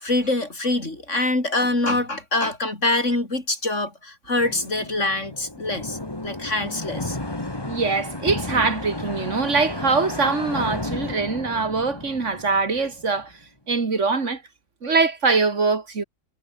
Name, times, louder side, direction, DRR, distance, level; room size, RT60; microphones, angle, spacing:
voice 1, 0.0-7.2, left 2 dB, 70° left, 5.4 m, -25 dB
sound 1, 4.4-13.2, left 2 dB, 20° left, 2.2 m, -33 dB
voice 2, 7.7-13.3 13.7-14.4 14.8-16.0, right 4 dB, 70° right, 2.6 m, -23 dB
omnidirectional pair, 1.3 m